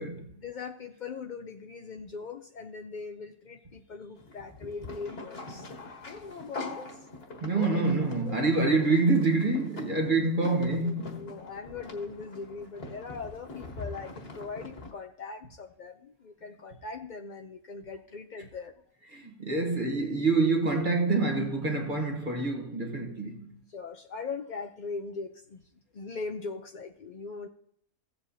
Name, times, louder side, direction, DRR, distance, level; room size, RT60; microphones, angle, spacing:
voice 1, 0.3-5.7 6.0-7.0 7.4-7.8 8.3-8.7 10.2-18.7 23.7-25.6 25.9-27.5, left 4 dB, 70° left, 0.4 m, -40 dB
sound 1, 4.2-14.9, left 2 dB, 40° left, 1.6 m, -43 dB
voice 2, 7.4-11.3 19.1-23.6, right 3 dB, 35° right, 1.2 m, -26 dB
16.0 x 7.8 x 2.7 m
omnidirectional pair, 1.6 m